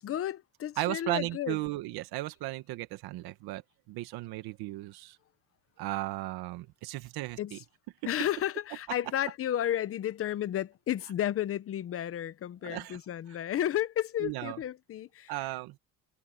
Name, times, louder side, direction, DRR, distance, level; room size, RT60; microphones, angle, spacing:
voice 1, 0.0-1.6 7.4-7.6 8.1-15.5, left 11 dB, 35° left, 0.8 m, -32 dB
voice 2, 0.8-5.2 5.8-7.6 12.6-13.0 14.2-14.6 15.3-15.8, right 18 dB, 80° right, 1.5 m, -35 dB
cardioid pair, 155°, 37 cm